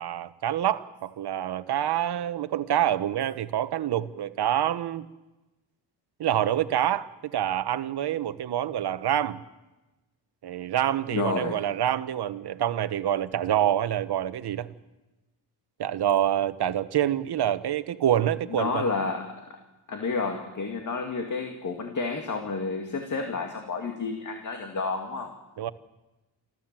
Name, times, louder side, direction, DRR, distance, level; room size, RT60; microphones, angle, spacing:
voice 1, 0.0-5.1 6.2-9.4 10.4-14.7 15.8-18.8 25.6-25.7, right 11 dB, 65° right, 1.1 m, -26 dB
voice 2, 11.1-11.6 18.5-19.3 19.9-25.3, left 4 dB, 45° left, 2.3 m, -30 dB
28.5 x 13.5 x 7.5 m
wide cardioid pair, 135°, 42 cm